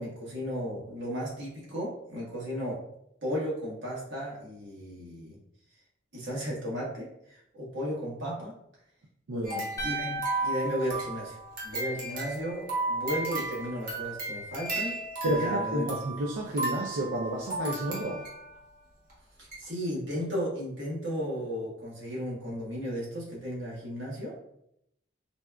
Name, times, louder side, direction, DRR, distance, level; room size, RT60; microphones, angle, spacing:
voice 1, 0.0-2.8 3.2-5.4 6.1-8.5 9.8-11.4 11.6-15.0 15.2-15.8 19.4-24.4, equal, 70° right, -5 dB, 1.3 m, -34 dB
voice 2, 9.3-9.7 15.2-18.2, right 1 dB, 90° right, -1 dB, 0.4 m, -31 dB
sound 1, 9.4-18.6 19.1-19.2 19.5-19.6, right 2 dB, 45° right, 0.9 m, -34 dB
sound 2, 9.8-12.0, right 2 dB, 15° left, 0.4 m, -37 dB
4.0 x 2.3 x 2.2 m, 0.76 s
head